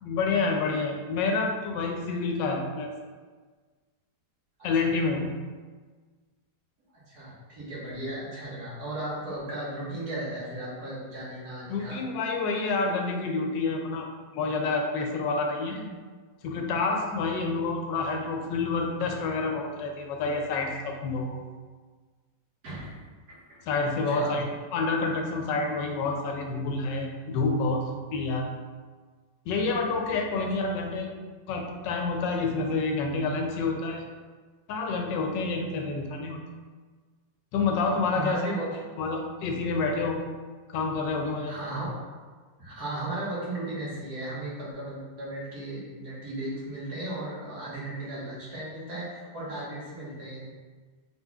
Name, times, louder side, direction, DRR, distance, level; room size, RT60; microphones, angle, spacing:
voice 1, 0.0-2.9 4.6-5.3 11.7-14.1 14.3-15.9 16.4-21.4 23.7-28.5 29.5-31.1 31.5-34.0 34.7-36.4 37.5-38.4 39.0-40.2 40.7-41.5, left 3 dB, 80° left, 2 dB, 1.3 m, -28 dB
voice 2, 6.9-12.0 22.6-23.0 23.3-23.6 24.1-24.3 38.1-38.8 41.5-42.1 42.6-50.5, right 1 dB, 60° right, -8 dB, 1.9 m, -36 dB
4.3 x 4.1 x 2.3 m, 1.4 s
omnidirectional pair, 1.9 m